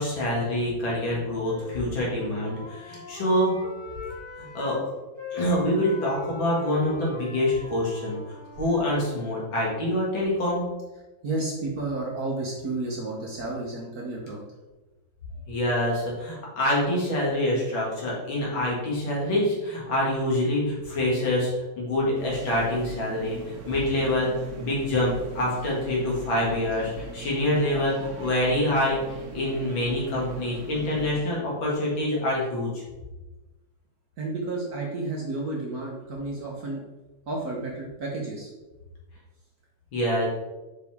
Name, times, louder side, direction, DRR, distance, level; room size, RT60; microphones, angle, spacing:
voice 1, 0.0-3.6 4.4-4.8 5.3-8.2 8.5-10.7 15.5-21.5 21.8-29.0 29.3-32.7 39.9-40.3, left 1 dB, 60° left, -4 dB, 2.6 m, -26 dB
Wind instrument woodwind instrument, 1.3-4.8 5.1-9.4, left 5 dB, 20° left, 2.3 m, -40 dB
voice 2, 11.2-14.4 34.2-36.8 37.3-38.5, right 2 dB, 55° right, -2 dB, 1.3 m, -31 dB
sound 1, 22.1-31.2, right 4 dB, 90° right, 0.6 m, -40 dB
6.4 x 5.3 x 3.6 m, 1.1 s
omnidirectional pair, 2.4 m